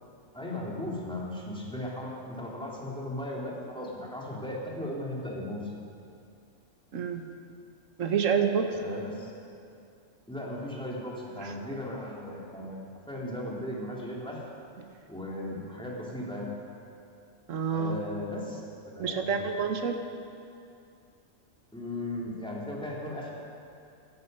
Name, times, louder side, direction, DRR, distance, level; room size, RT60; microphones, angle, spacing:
voice 1, 0.3-5.7 8.7-9.3 10.3-12.8 13.1-14.4 15.1-16.5 17.7-19.4 21.7-23.3, left 1 dB, 5° left, -5 dB, 2.7 m, -37 dB
voice 2, 6.9-7.2 8.0-8.7 11.4-11.5 14.8-14.9 17.5-18.0 19.0-20.0, right 6 dB, 75° right, 6 dB, 1.4 m, -28 dB
15.5 x 12.5 x 5.4 m, 2.5 s
omnidirectional pair, 1.4 m